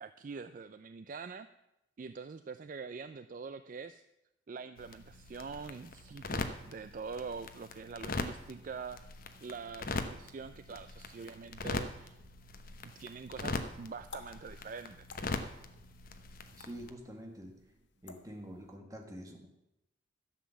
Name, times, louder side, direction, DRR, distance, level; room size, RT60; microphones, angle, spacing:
voice 1, 0.0-1.5 2.0-4.0 4.5-9.0 9.4-12.2 12.8-15.2, right 5 dB, 45° right, 11 dB, 0.4 m, -44 dB
sound 1, 4.8-16.9, left 3 dB, 50° left, 0.9 m, -41 dB
sound 2, 12.9-18.8, left 4 dB, 70° left, 1.3 m, -56 dB
voice 2, 16.6-17.5 18.0-19.5, equal, 20° right, 2 dB, 1.7 m, -46 dB
12.0 x 7.4 x 7.0 m, 0.88 s
head